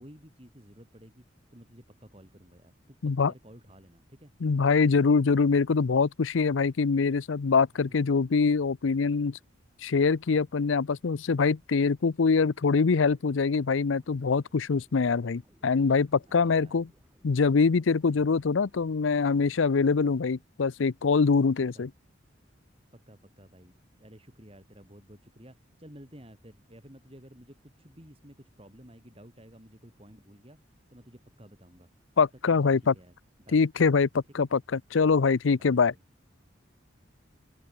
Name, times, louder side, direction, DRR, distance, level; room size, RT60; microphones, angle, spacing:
voice 1, 0.0-4.3 7.7-7.8 16.3-16.8 18.1-18.3 21.7-21.9 22.9-31.9 32.5-33.1 33.4-33.6 34.4-34.5 35.6-36.0, equal, 30° right, 7.1 m, -53 dB
voice 2, 4.4-9.4 9.8-16.9 17.2-21.9 32.2-32.9 33.5-35.9, left 5 dB, 80° left, 0.6 m, -24 dB
sound 1, 12.3-19.6, equal, 10° right, 5.1 m, -64 dB
open air
head